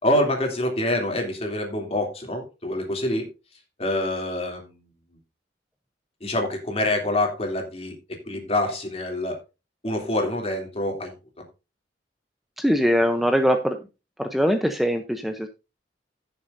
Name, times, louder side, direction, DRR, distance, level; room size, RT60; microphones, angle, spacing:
voice 1, 0.0-3.3 3.8-4.8 6.2-8.0 8.3-9.4 9.8-11.1, left 1 dB, 35° left, 2 dB, 3.0 m, -26 dB
voice 2, 12.6-13.8 14.2-15.5, equal, ahead, 6 dB, 0.7 m, -22 dB
16.0 x 6.9 x 2.6 m, 0.28 s
head